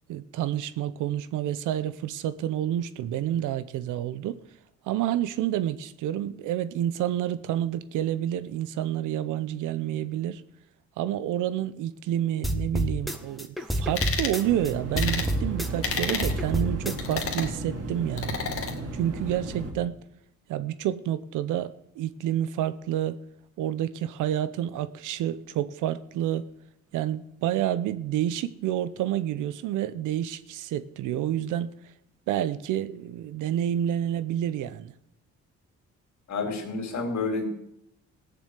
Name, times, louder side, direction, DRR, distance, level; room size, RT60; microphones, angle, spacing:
voice 1, 0.1-4.4 4.8-10.4 11.0-18.4 18.9-20.0 20.5-23.2 23.6-26.5 26.9-31.7 32.3-34.9, right 11 dB, 90° right, 0.8 m, -29 dB
sound 1, 12.4-14.7 15.0-17.2, equal, ahead, 1.4 m, -29 dB
sound 2, 14.0-14.4 15.0-15.3 15.8-16.3 17.0-17.5 18.2-18.7, left 5 dB, 50° left, 2.1 m, -30 dB
sound 3, 14.4-19.7, right 2 dB, 50° right, 3.2 m, -35 dB
voice 2, 36.3-37.5, left 3 dB, 65° left, 3.7 m, -29 dB
15.5 x 7.0 x 8.2 m
cardioid pair, 90°, 30 cm